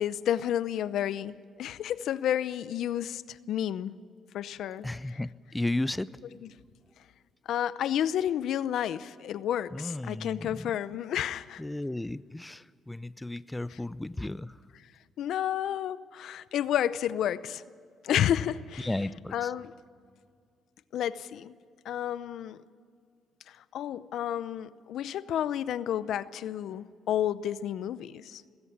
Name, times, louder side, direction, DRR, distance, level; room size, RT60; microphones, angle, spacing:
voice 1, 0.0-4.0 4.3-4.9 7.5-11.6 15.2-17.6 18.0-18.9 19.3-19.7 20.9-21.5 21.8-22.6 23.5-28.4, left 10 dB, 75° left, 0.6 m, -31 dB
voice 2, 4.8-6.2 9.7-10.7 11.6-14.6 18.8-19.5, left 2 dB, 10° left, 0.5 m, -34 dB
20.0 x 16.5 x 8.7 m
cardioid pair, 90°, 0 cm